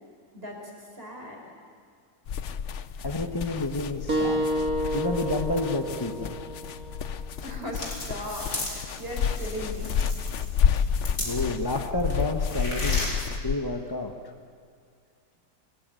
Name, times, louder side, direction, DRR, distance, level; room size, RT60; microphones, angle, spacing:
voice 1, 0.3-1.4 7.4-9.9, equal, 35° right, 0 dB, 5.2 m, -38 dB
sound 1, 2.3-13.5, left 7 dB, 55° left, 0.9 m, -30 dB
voice 2, 3.0-4.5 4.9-6.4 11.2-14.1, left 2 dB, 15° left, 4 dB, 1.1 m, -30 dB
sound 2, 4.1-9.2, right 1 dB, 55° right, 2.9 m, -32 dB
sound 3, 7.4-11.7 12.0-13.2, left 2 dB, 80° left, 4.9 m, -35 dB
26.5 x 18.0 x 9.1 m, 2.1 s
omnidirectional pair, 1.8 m